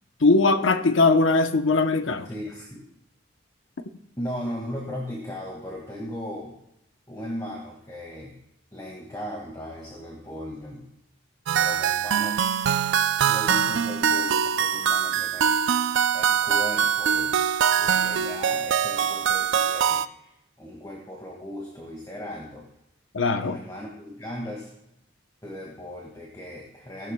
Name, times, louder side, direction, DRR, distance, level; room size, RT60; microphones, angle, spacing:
voice 1, 0.2-2.3 23.1-23.6, left 3 dB, 70° left, 0.8 m, -20 dB
voice 2, 2.2-2.8 4.2-6.6 7.1-8.4 8.7-10.9 11.5-12.4 13.2-15.6 16.1-17.4 17.8-20.3 20.6-22.7 23.3-24.7 25.4-27.1, equal, 20° left, 1.9 m, -37 dB
sound 1, 11.5-20.1, right 8 dB, 65° right, 0.4 m, -23 dB
16.5 x 11.5 x 2.3 m
head